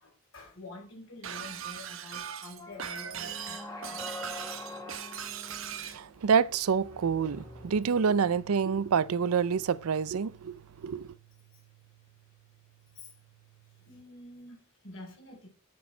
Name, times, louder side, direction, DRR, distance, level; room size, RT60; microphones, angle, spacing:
voice 1, 0.0-4.1 13.0-13.1 13.9-15.5, left 2 dB, 65° left, 3.8 m, -48 dB
Shatter, 1.2-6.0, right 8 dB, 65° right, 0.9 m, -39 dB
sound 1, 2.6-8.6, left 1 dB, 15° left, 1.5 m, -45 dB
voice 2, 5.9-11.1, right 6 dB, 90° right, 0.5 m, -27 dB
sound 2, 7.8-14.0, right 14 dB, 5° right, 1.7 m, -58 dB
8.4 x 6.4 x 4.3 m
head